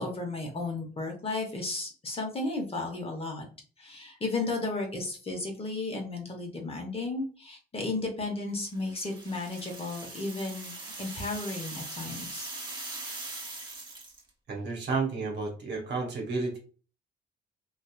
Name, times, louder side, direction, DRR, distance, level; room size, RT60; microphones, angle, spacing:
voice 1, 0.0-3.5 3.8-12.5, left 2 dB, 30° left, 2 dB, 0.9 m, -34 dB
sound 1, 8.7-14.3, right 2 dB, 20° right, 1.0 m, -41 dB
voice 2, 14.5-16.6, right 4 dB, 60° right, 1 dB, 1.0 m, -31 dB
2.7 x 2.3 x 2.3 m, 0.38 s
cardioid pair, 90°, 20 cm